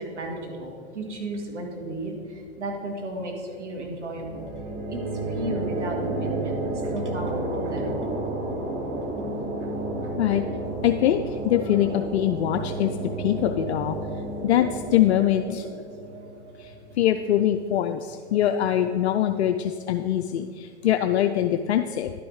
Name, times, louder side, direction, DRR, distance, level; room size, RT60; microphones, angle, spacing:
voice 1, 0.0-2.2 2.6-4.5 4.9-5.0 5.4-8.0, right 1 dB, 85° right, 1 dB, 1.9 m, -34 dB
sound 1, 4.2-17.5, right 2 dB, 45° right, 2.1 m, -31 dB
voice 2, 10.8-12.9 13.2-14.0 14.4-15.7 16.6-22.1, left 11 dB, 65° left, 6 dB, 0.5 m, -23 dB
11.5 x 6.1 x 4.8 m, 2.3 s
hypercardioid pair, 110°, 35 cm